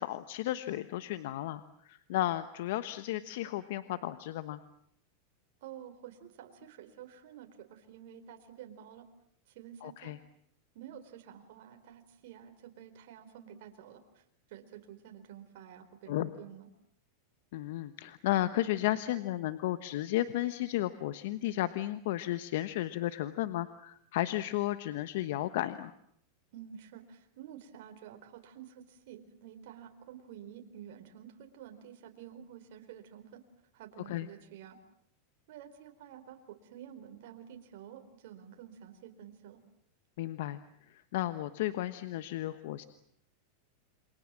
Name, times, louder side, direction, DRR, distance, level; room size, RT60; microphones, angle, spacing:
voice 1, 0.0-4.6 9.8-10.2 16.1-16.3 17.5-25.9 34.1-34.3 40.2-42.8, left 14 dB, 65° left, 12 dB, 1.2 m, -33 dB
voice 2, 5.6-9.0 9.5-10.1 10.7-14.2 14.5-16.7 26.5-33.4 33.7-34.8 35.5-39.6, right 9 dB, 65° right, 5 dB, 4.4 m, -50 dB
28.5 x 25.0 x 7.6 m, 0.70 s
supercardioid pair, 140°, 0 cm